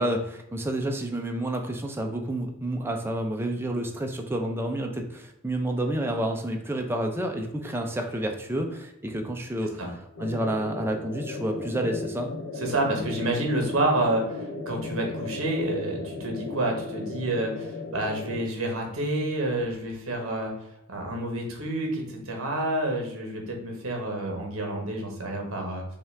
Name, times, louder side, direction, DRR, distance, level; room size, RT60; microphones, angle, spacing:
voice 1, 0.0-12.3, right 1 dB, 10° right, 3 dB, 0.4 m, -29 dB
sound 1, 10.2-18.5, left 2 dB, 65° left, 0.7 m, -36 dB
voice 2, 12.6-20.5 20.9-25.8, right 1 dB, 65° right, 1 dB, 1.2 m, -29 dB
5.5 x 2.4 x 3.3 m, 0.83 s
head